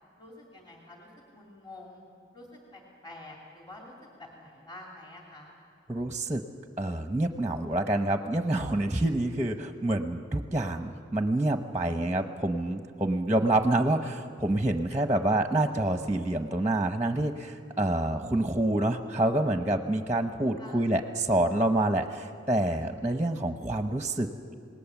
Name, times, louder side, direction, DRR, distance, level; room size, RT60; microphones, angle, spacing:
voice 1, 0.2-2.0 2.3-3.9 4.2-5.5 20.6-20.9, left 1 dB, 25° left, -2 dB, 2.8 m, -48 dB
voice 2, 5.9-6.4 6.8-24.5, right 1 dB, 10° right, 6 dB, 0.8 m, -27 dB
27.5 x 19.5 x 7.1 m, 2.5 s
head